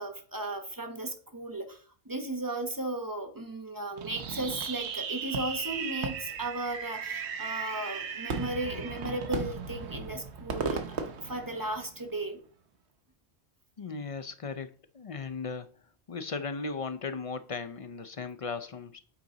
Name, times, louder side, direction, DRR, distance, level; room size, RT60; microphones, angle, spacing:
voice 1, 0.0-12.4, right 1 dB, 20° right, 5 dB, 1.0 m, -36 dB
Fireworks, 4.0-12.1, right 6 dB, 85° right, 1.1 m, -36 dB
voice 2, 13.8-15.7 16.1-19.0, left 4 dB, 50° left, 9 dB, 0.4 m, -37 dB
8.7 x 3.9 x 3.8 m, 0.42 s
omnidirectional pair, 1.1 m